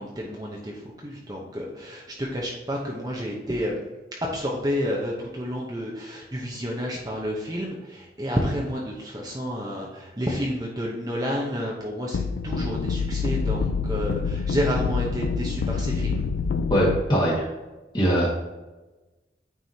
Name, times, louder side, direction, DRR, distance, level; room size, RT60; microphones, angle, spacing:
voice 1, 0.0-3.8 4.2-16.3, equal, 20° right, -3 dB, 0.8 m, -30 dB
sound 1, 12.1-17.0, left 5 dB, 90° left, 0.4 m, -26 dB
voice 2, 16.7-17.5 17.9-18.3, equal, 25° left, -5 dB, 1.7 m, -21 dB
9.3 x 4.8 x 2.8 m, 1.1 s
head